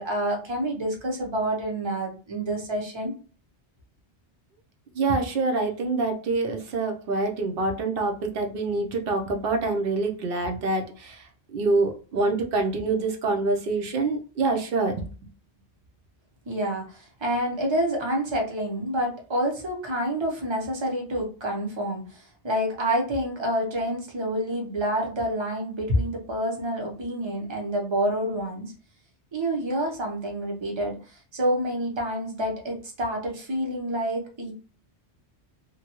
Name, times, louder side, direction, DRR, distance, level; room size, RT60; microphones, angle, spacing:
voice 1, 0.0-3.1 16.5-28.7 29.3-31.0 31.3-34.5, right 1 dB, 30° right, 1 dB, 0.7 m, -28 dB
voice 2, 5.0-11.2 11.5-15.0, right 3 dB, 60° right, 3 dB, 0.8 m, -26 dB
2.7 x 2.2 x 2.9 m, 0.37 s
omnidirectional pair, 1.1 m